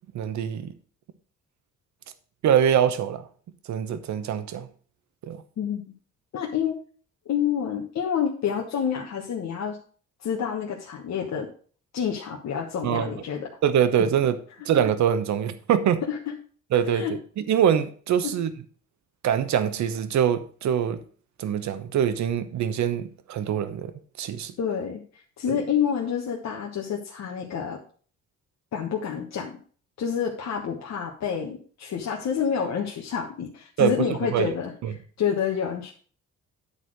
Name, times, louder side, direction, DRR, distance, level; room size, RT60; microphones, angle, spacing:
voice 1, 0.1-0.7 2.4-3.2 3.7-4.7 5.2-5.4 12.8-13.1 13.6-14.4 14.6-16.0 16.7-17.1 17.4-18.5 19.2-21.0 21.4-24.5 25.5-25.6 33.8-34.5 34.8-34.9, right 9 dB, 65° right, 1.0 m, -24 dB
voice 2, 6.3-6.8 7.2-9.8 10.2-11.5 11.9-13.5 16.1-16.3 16.9-17.1 18.2-18.3 24.6-27.8 28.7-29.6 30.0-34.7 35.2-35.9, left 8 dB, 60° left, 1.3 m, -28 dB
9.7 x 4.1 x 6.2 m
cardioid pair, 90°, 30 cm